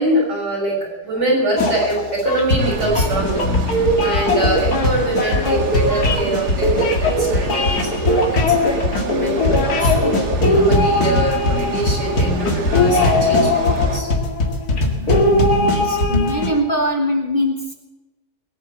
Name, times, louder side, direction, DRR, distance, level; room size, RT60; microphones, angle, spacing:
voice 1, 0.0-3.5 4.0-14.1 15.1-15.2, right 1 dB, 70° right, -1 dB, 7.3 m, -24 dB
sound 1, 1.6-16.5, left 2 dB, 60° left, 2.6 m, -19 dB
sound 2, 2.6-14.0, right 5 dB, 45° right, 1.3 m, -30 dB
voice 2, 14.7-17.7, left 1 dB, 30° left, 2 dB, 1.8 m, -23 dB
21.0 x 9.5 x 7.0 m, 1.1 s
omnidirectional pair, 1.8 m